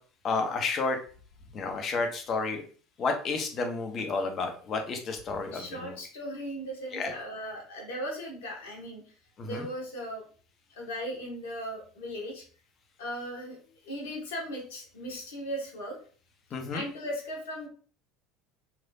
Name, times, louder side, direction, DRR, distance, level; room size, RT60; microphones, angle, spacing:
voice 1, 0.2-1.0 1.5-2.6 3.0-5.9 6.9-7.1 9.4-9.6 16.5-16.8, left 4 dB, 40° left, 4 dB, 0.9 m, -31 dB
voice 2, 5.5-9.0 9.4-10.2 10.8-12.4 13.0-13.6 13.8-16.0 16.7-17.7, equal, 70° left, -1 dB, 1.1 m, -37 dB
3.2 x 2.9 x 2.7 m, 0.42 s
hypercardioid pair, 70°, 0 cm